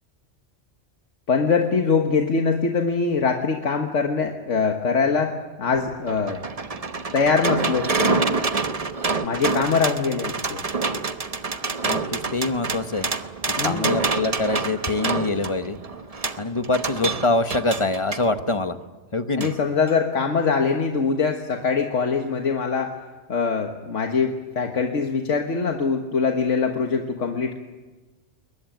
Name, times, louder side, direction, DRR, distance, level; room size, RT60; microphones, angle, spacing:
voice 1, 1.3-6.4 7.1-8.3 9.2-10.6 13.6-14.0 19.4-23.0 23.3-27.6, left 5 dB, 85° left, 3 dB, 1.7 m, -23 dB
sound 1, 5.7-18.3 19.4-19.5 19.9-20.0, right 4 dB, 35° right, 1.0 m, -27 dB
voice 2, 11.8-13.1 13.6-15.8 16.4-18.8 19.1-19.5, left 2 dB, 25° left, 9 dB, 1.0 m, -24 dB
22.0 x 20.0 x 9.2 m, 1.2 s
omnidirectional pair, 1.2 m